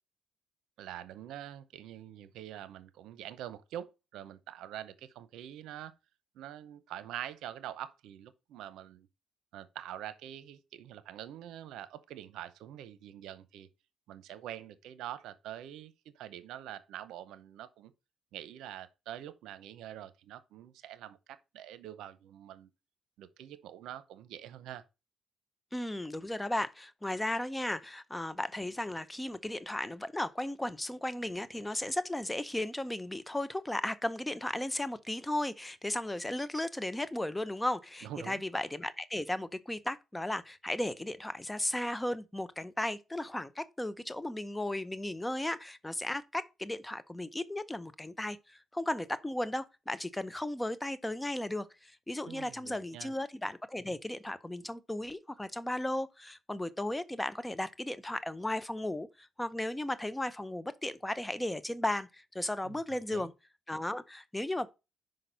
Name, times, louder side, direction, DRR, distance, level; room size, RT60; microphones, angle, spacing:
voice 1, 0.8-5.9 6.3-9.1 9.5-13.7 14.1-17.9 18.3-22.7 23.2-24.8 38.0-38.4 52.2-53.1 62.6-62.8 63.1-63.3, right 11 dB, 85° right, 0.7 m, -45 dB
voice 2, 25.7-63.3 63.7-64.7, left 1 dB, 10° left, 0.6 m, -35 dB
5.9 x 5.2 x 5.3 m
cardioid pair, 90°, 0 cm